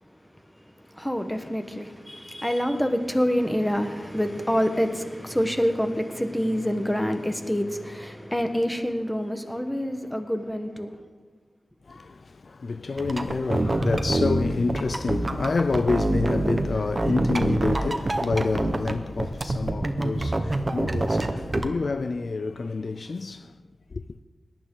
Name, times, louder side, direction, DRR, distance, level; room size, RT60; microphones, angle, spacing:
voice 1, 0.9-11.0, equal, 5° left, 1.2 m, -26 dB
voice 2, 11.9-23.5 23.9-24.0, left 3 dB, 60° left, 0.4 m, -28 dB
sound 1, 13.0-16.7 17.0-18.9 19.2-21.7, right 2 dB, 35° right, 1.0 m, -26 dB
18.0 x 11.5 x 3.8 m
wide cardioid pair, 75°, 0 cm